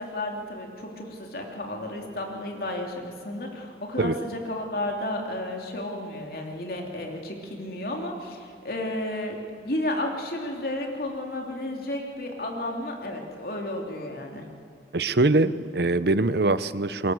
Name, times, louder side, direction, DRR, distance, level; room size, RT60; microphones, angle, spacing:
voice 1, 0.0-14.5, left 1 dB, 55° left, 1 dB, 3.2 m, -32 dB
voice 2, 14.9-17.1, right 2 dB, 65° right, 14 dB, 0.9 m, -23 dB
29.5 x 22.5 x 7.9 m, 2.4 s
head